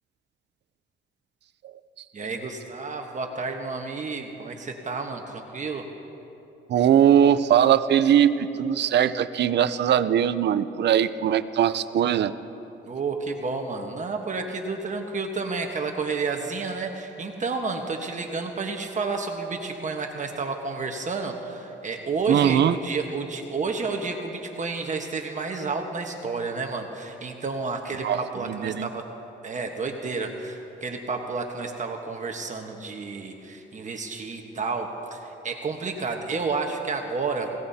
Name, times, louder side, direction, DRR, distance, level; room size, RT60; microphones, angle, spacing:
voice 1, 2.1-5.9 12.9-29.1 29.4-37.5, right 4 dB, 40° right, 3 dB, 1.2 m, -31 dB
voice 2, 6.7-12.3 22.3-22.8 28.0-28.9, right 9 dB, 60° right, 13 dB, 0.6 m, -21 dB
21.0 x 17.0 x 2.8 m, 2.9 s
cardioid pair, 90°, 20 cm